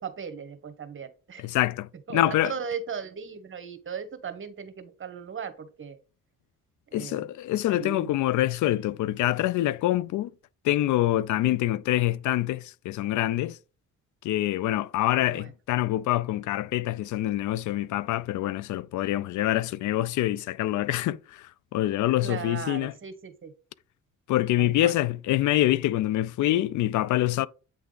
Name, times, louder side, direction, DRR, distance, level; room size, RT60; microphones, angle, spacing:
voice 1, 0.0-1.5 2.1-6.0 6.9-7.3 7.7-8.1 11.5-11.6 15.1-15.5 22.2-23.5 24.6-24.9, right 6 dB, 40° right, 1.3 m, -37 dB
voice 2, 1.4-2.5 6.9-10.3 10.6-13.6 14.2-21.4 21.7-22.9 24.3-27.5, left 14 dB, 75° left, 0.5 m, -25 dB
8.6 x 3.4 x 3.9 m
cardioid pair, 90°, 30 cm